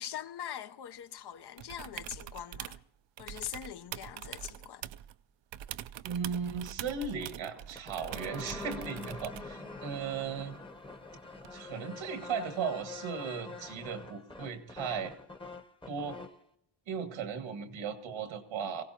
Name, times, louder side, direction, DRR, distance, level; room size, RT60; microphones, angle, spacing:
voice 1, 0.0-2.8 3.2-4.9, left 10 dB, 60° left, 0.8 m, -42 dB
sound 1, 1.6-2.8 3.2-5.2 5.5-9.6 11.4-11.5, right 11 dB, 70° right, 0.6 m, -44 dB
voice 2, 6.0-10.6 11.5-15.1 15.9-16.2 16.9-18.8, right 6 dB, 90° right, 1.9 m, -36 dB
sound 2, 7.6-16.4, left 3 dB, 10° left, 0.9 m, -45 dB
24.0 x 16.5 x 2.9 m
cardioid pair, 115°, 46 cm